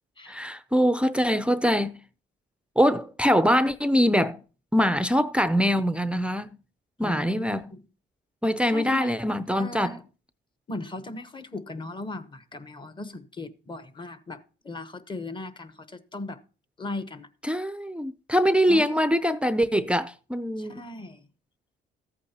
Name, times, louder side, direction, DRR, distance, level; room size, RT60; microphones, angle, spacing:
voice 1, 0.3-2.0 2.8-4.4 4.7-6.5 7.0-7.7 8.4-10.0 17.5-20.8, equal, 5° right, 0.5 m, -23 dB
voice 2, 7.0-7.8 8.7-9.2 9.5-10.0 10.7-16.4 16.8-17.3 18.7-18.9 20.6-21.2, left 2 dB, 25° left, 1.0 m, -38 dB
14.0 x 8.4 x 2.9 m
cardioid pair, 90°, 20 cm